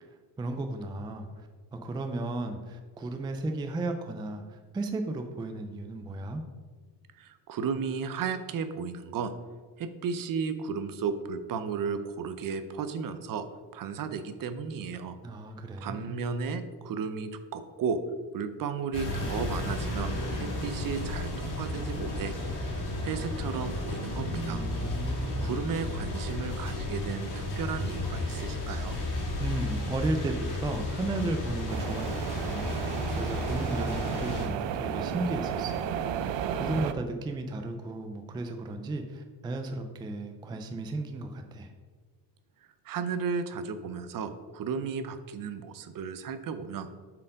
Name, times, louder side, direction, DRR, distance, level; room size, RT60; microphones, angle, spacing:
voice 1, 0.4-6.4 15.2-16.1 24.5-25.6 29.4-32.9 33.2-35.9 36.6-41.7, right 2 dB, 10° right, 5 dB, 0.3 m, -34 dB
voice 2, 7.2-9.3 9.8-13.4 13.7-15.2 15.8-18.0 18.3-22.3 22.6-22.7 23.0-24.6 25.4-29.0 42.8-46.9, right 6 dB, 50° right, 10 dB, 0.6 m, -34 dB
sound 1, 18.9-34.5, left 2 dB, 45° left, 2.4 m, -33 dB
sound 2, 31.7-36.9, right 8 dB, 90° right, 0.6 m, -33 dB
7.0 x 4.7 x 5.1 m, 1.5 s
cardioid pair, 160°, 42 cm